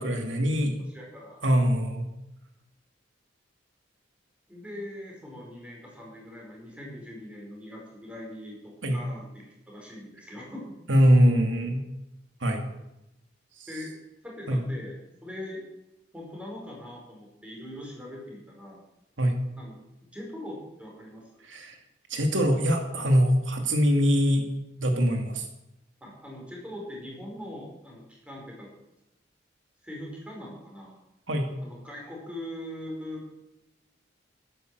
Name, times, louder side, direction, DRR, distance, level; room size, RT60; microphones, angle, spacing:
voice 1, 0.0-0.8 1.4-2.1 8.8-9.0 10.9-11.8 12.4-12.6 14.5-14.6 19.2-19.4 21.5-21.8 22.1-24.5 24.8-25.5 31.3-31.5, equal, 90° right, 4 dB, 2.5 m, -23 dB
voice 2, 0.9-1.4 4.5-10.7 13.7-13.9 14.2-15.0 15.2-15.6 16.1-18.8 19.6-19.8 20.1-21.3 26.0-28.7 29.8-30.9 31.6-33.2, left 1 dB, 5° right, -2 dB, 5.2 m, -41 dB
12.5 x 11.5 x 7.8 m, 0.90 s
head